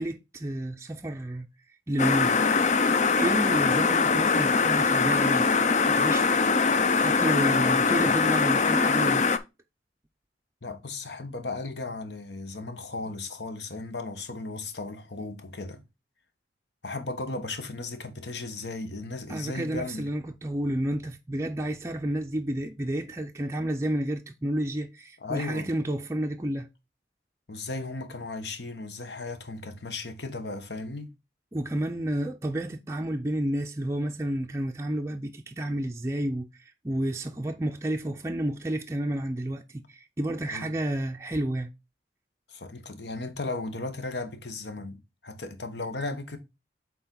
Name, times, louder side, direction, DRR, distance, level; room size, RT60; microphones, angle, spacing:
voice 1, 0.0-1.5 1.9-2.4 3.2-5.5 5.8-6.3 7.0-9.3 19.3-26.7 31.5-41.7, right 1 dB, 15° right, 0.4 m, -30 dB
sound 1, 2.0-9.4, left 4 dB, 40° left, 0.5 m, -22 dB
voice 2, 7.5-8.2 10.6-15.8 16.8-20.1 25.2-25.7 27.5-31.1 40.5-40.7 42.5-46.4, left 3 dB, 70° left, 1.2 m, -36 dB
6.9 x 4.2 x 3.8 m
head